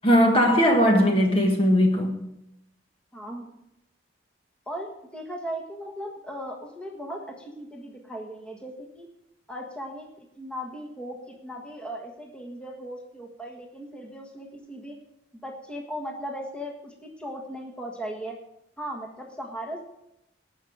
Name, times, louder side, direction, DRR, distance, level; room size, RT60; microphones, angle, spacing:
voice 1, 0.0-2.2, equal, 30° left, 1.5 m, -19 dB
voice 2, 3.1-3.5 4.7-9.1 9.5-15.0 15.3-18.4 18.8-19.8, equal, 5° left, 1.5 m, -37 dB
19.0 x 6.3 x 4.9 m
head